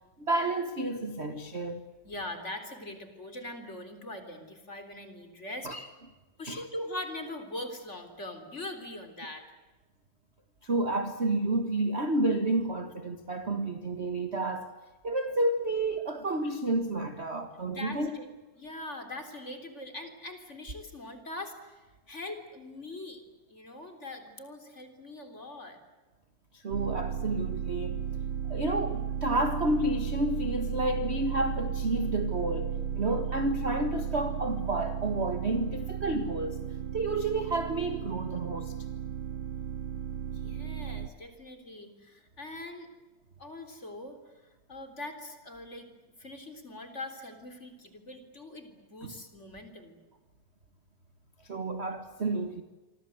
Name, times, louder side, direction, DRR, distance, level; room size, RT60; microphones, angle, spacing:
voice 1, 0.2-1.8 5.6-5.9 6.5-6.6 10.6-14.7 15.0-18.1 26.5-28.0 28.4-36.6 36.9-38.7 49.0-49.1 51.4-52.6, right 2 dB, 35° right, 1.1 m, -30 dB
voice 2, 2.0-5.7 6.4-9.5 17.7-18.3 18.6-23.2 23.5-25.8 33.0-33.2 40.3-42.9 43.4-45.9 46.2-50.0, left 1 dB, 20° left, 3.6 m, -42 dB
sound 1, 26.7-41.1, right 8 dB, 60° right, 1.4 m, -34 dB
27.5 x 24.5 x 7.9 m
omnidirectional pair, 3.6 m